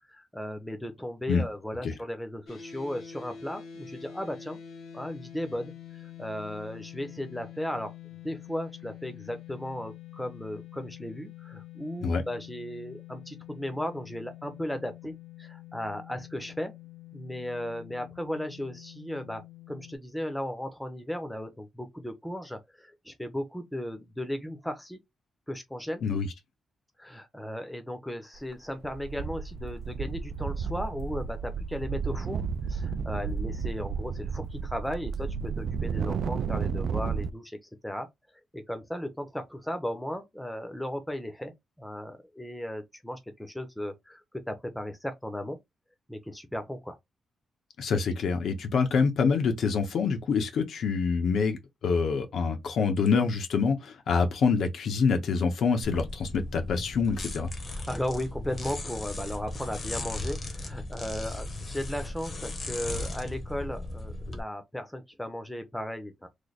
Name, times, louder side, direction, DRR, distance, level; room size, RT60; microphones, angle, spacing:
voice 1, 0.1-4.6 4.9-5.7 6.0-7.9 8.2-16.7 17.1-19.4 19.7-25.0 25.5-26.0 27.0-37.6 37.8-38.1 38.5-45.6 46.1-47.0 57.7-66.3, equal, 5° left, 0.6 m, -36 dB
sound 1, 2.5-20.0, left 10 dB, 90° left, 1.2 m, -46 dB
sound 2, 28.4-28.5 28.8-37.3, right 5 dB, 60° right, 0.3 m, -32 dB
voice 2, 47.8-57.5, left 5 dB, 65° left, 0.8 m, -26 dB
sound 3, 55.8-64.4, left 2 dB, 35° left, 0.8 m, -37 dB
3.2 x 2.1 x 3.9 m
wide cardioid pair, 165°, 0 cm